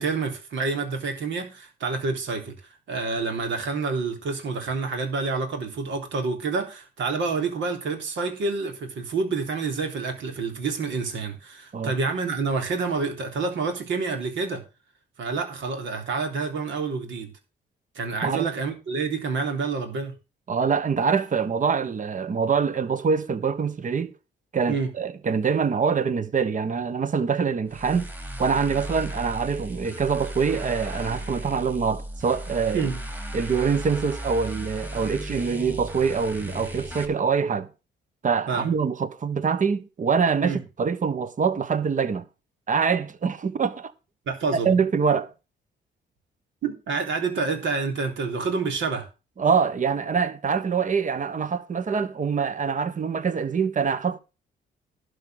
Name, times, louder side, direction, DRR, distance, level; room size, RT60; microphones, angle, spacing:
voice 1, 0.0-2.5 2.9-14.6 15.2-17.3 18.0-20.1 24.7-24.9 32.7-33.0 38.5-38.7 40.4-40.6 44.3-44.7 46.6-49.1, right 4 dB, 70° right, 3.5 m, -28 dB
voice 2, 20.5-24.1 24.5-28.1 28.4-32.9 33.3-37.7 38.2-42.2 42.7-43.9 44.6-45.3 49.4-54.2, right 6 dB, 40° right, 1.3 m, -24 dB
sound 1, 27.7-37.1, right 1 dB, 10° right, 2.7 m, -35 dB
12.0 x 5.2 x 7.7 m
cardioid pair, 90°, 20 cm